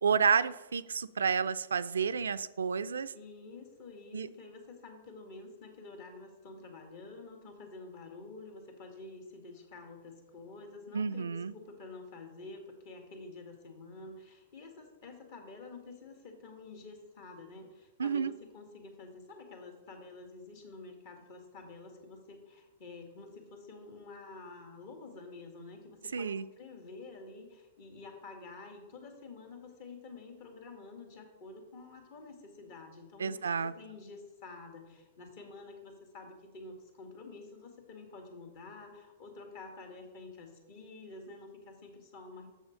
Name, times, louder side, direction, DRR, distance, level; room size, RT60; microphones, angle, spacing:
voice 1, 0.0-3.1 4.1-4.3 10.9-11.5 18.0-18.3 26.1-26.5 33.2-33.7, right 6 dB, 85° right, 14 dB, 0.3 m, -30 dB
voice 2, 3.1-42.5, left 3 dB, 55° left, 4 dB, 2.0 m, -49 dB
6.9 x 6.3 x 5.1 m, 1.1 s
hypercardioid pair, 115°, 0 cm